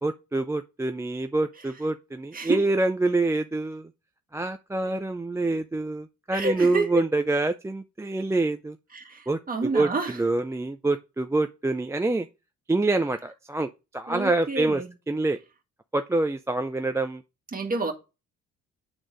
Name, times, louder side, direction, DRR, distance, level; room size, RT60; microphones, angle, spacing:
voice 1, 0.0-3.9 4.3-8.8 9.3-12.3 12.7-15.4 15.9-17.2, right 2 dB, 10° right, 0.4 m, -26 dB
voice 2, 6.3-7.0 8.9-10.2 14.1-14.9 17.5-17.9, right 3 dB, 30° right, 1.8 m, -29 dB
8.7 x 3.9 x 5.0 m
cardioid pair, 90°, 30 cm